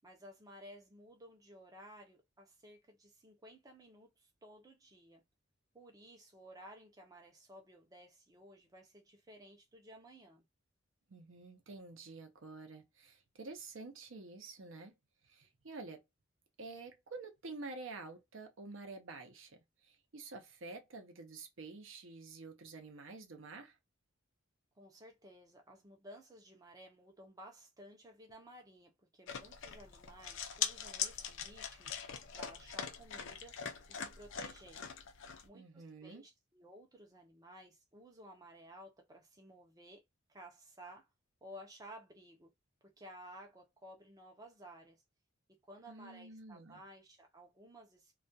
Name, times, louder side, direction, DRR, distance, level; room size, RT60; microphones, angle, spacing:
voice 1, 0.0-5.2 5.7-10.5 24.8-31.9 32.3-33.6 33.9-34.8 35.4-40.0 40.3-41.1 41.4-42.5 42.8-45.0 45.5-48.2, right 1 dB, 15° right, 0.5 m, -56 dB
voice 2, 11.1-14.9 15.3-16.0 16.6-23.8 35.5-36.2 45.9-46.8, right 3 dB, 65° right, 0.6 m, -49 dB
sound 1, 29.3-35.4, left 7 dB, 60° left, 0.5 m, -42 dB
2.3 x 2.2 x 2.6 m
head